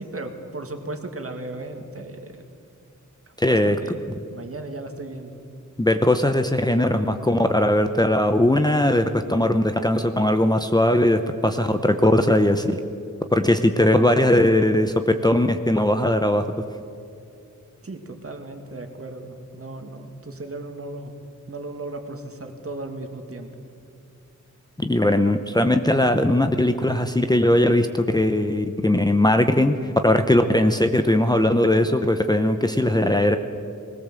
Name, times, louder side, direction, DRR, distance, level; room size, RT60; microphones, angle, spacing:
voice 1, 0.0-2.4 3.4-4.0 4.3-5.4 17.8-21.1 21.5-23.5, right 2 dB, 45° right, 4 dB, 2.1 m, -36 dB
voice 2, 3.4-3.8 5.8-12.8 13.3-16.4 24.8-29.7 30.0-33.4, left 1 dB, 15° left, 7 dB, 0.8 m, -19 dB
20.5 x 18.5 x 7.6 m, 2.5 s
wide cardioid pair, 110°, 31 cm